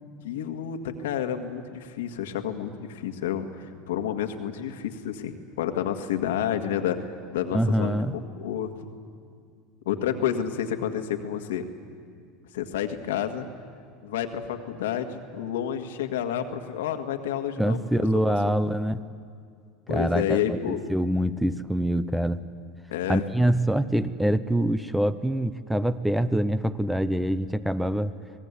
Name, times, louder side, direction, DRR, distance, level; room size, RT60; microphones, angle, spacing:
voice 1, 0.2-8.0 8.4-8.7 9.8-11.7 12.5-13.5 14.0-18.6 19.9-20.8 22.9-23.2, left 9 dB, 85° left, 6 dB, 1.8 m, -30 dB
voice 2, 7.5-8.2 17.6-19.0 19.9-22.4 23.1-28.1, right 1 dB, 5° right, 14 dB, 0.9 m, -25 dB
26.5 x 19.0 x 8.4 m, 2.2 s
supercardioid pair, 100°, 0 cm